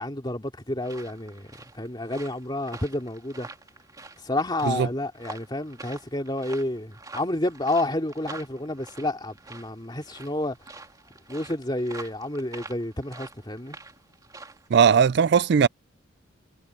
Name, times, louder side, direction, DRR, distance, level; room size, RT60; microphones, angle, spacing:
voice 1, 0.0-1.5 1.7-3.5 4.2-10.6 11.3-13.8, left 1 dB, 25° left, 2.7 m, -30 dB
sound 1, 0.8-14.7, right 3 dB, 20° right, 2.5 m, -46 dB
voice 2, 14.7-15.7, right 7 dB, 60° right, 0.3 m, -18 dB
head